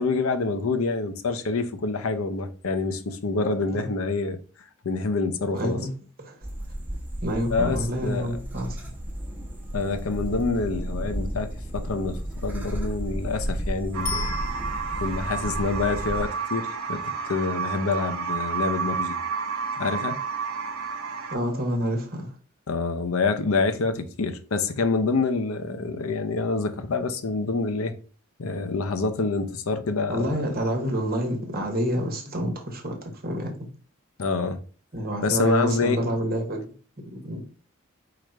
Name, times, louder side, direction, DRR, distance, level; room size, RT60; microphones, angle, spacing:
voice 1, 0.0-4.4 4.8-5.8 7.5-8.4 9.7-14.3 15.0-19.2 19.8-20.2 22.7-27.9 28.4-30.3 34.2-34.6 35.2-36.0, left 3 dB, 75° left, 0.6 m, -27 dB
voice 2, 5.5-5.9 6.2-6.4 7.2-8.8 21.3-22.3 30.1-33.7 34.9-36.7 37.1-37.4, equal, 45° right, 1.1 m, -28 dB
sound 1, 6.4-16.3, equal, 10° right, 1.1 m, -33 dB
sound 2, 13.9-21.4, right 5 dB, 85° right, 0.7 m, -30 dB
Bicycle bell, 14.1-15.2 24.2-24.3, left 7 dB, 55° left, 0.9 m, -36 dB
4.8 x 2.5 x 4.4 m
head